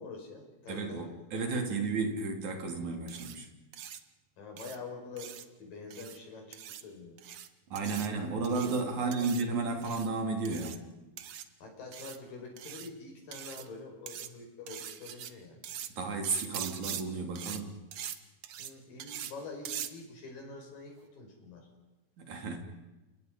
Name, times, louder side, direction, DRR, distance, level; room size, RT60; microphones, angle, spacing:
voice 1, 0.0-1.1 1.5-1.8 4.4-5.3 5.6-7.2 7.9-8.1 9.0-9.3 11.6-15.6 18.6-21.7, left 3 dB, 60° left, 2 dB, 7.2 m, -46 dB
voice 2, 0.7-3.5 7.7-10.8 16.0-17.8 22.2-22.6, right 3 dB, 50° right, 3 dB, 4.3 m, -33 dB
sound 1, 3.1-3.3 3.7-4.0 4.6-4.8 5.2-5.4 5.9-6.2 6.5-6.8 7.2-7.5 7.7-8.1 8.4-8.8 9.1-9.4 9.8-10.1 10.4-10.8 11.2-11.4 11.9-12.2 12.6-12.9 13.3-13.7 14.1-14.3 14.7-15.3 15.6-15.9 16.2-17.0 17.3-17.6 17.9-18.2 18.4-18.7 19.0-19.3 19.6-19.9, right 10 dB, 80° right, 1.4 m, -42 dB
30.0 x 28.5 x 5.4 m, 1.1 s
omnidirectional pair, 4.6 m